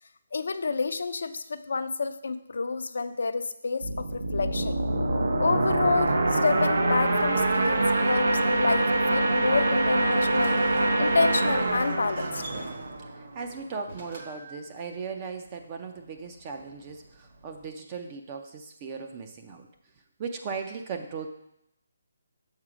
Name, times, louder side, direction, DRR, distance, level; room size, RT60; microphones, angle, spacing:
voice 1, 0.3-4.8 5.4-10.6 11.0-12.4, left 4 dB, 70° left, 10 dB, 0.5 m, -29 dB
sound 1, 3.8-13.4, right 2 dB, 80° right, 1.0 m, -25 dB
Sliding door, 10.1-17.7, right 2 dB, 50° right, 1.3 m, -45 dB
voice 2, 13.1-19.7 20.2-21.3, right 5 dB, 25° right, 5 dB, 0.5 m, -37 dB
7.2 x 4.8 x 5.0 m, 0.79 s
hypercardioid pair, 165°, 0 cm